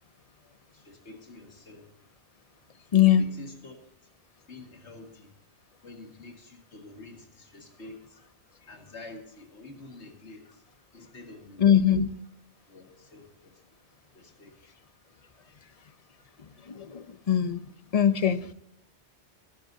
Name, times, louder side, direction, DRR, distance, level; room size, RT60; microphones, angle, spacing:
voice 1, 0.4-1.9 2.9-3.8 4.5-5.3 5.8-8.2 8.7-10.6 10.9-12.0 12.7-13.6 14.1-14.5 15.4-15.5, left 2 dB, 85° left, 3 dB, 2.2 m, -48 dB
voice 2, 2.9-3.3 11.6-12.1 16.7-17.6 17.9-18.5, left 9 dB, 40° left, 13 dB, 0.6 m, -22 dB
20.5 x 12.5 x 2.7 m, 0.74 s
omnidirectional pair, 1.1 m